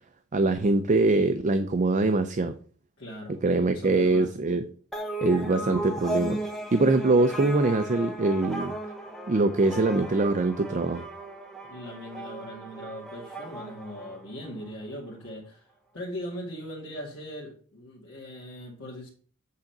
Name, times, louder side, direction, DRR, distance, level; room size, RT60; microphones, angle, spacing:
voice 1, 0.3-2.5 3.4-4.6 5.2-6.4 6.7-8.8 9.3-11.1, right 3 dB, 35° right, 9 dB, 0.4 m, -23 dB
voice 2, 3.0-3.4 3.7-4.3 11.7-15.7 15.9-19.1, equal, 60° left, -6 dB, 2.3 m, -39 dB
sound 1, 4.9-14.7, right 1 dB, ahead, 1.0 m, -36 dB
8.5 x 3.9 x 5.8 m, 0.43 s
head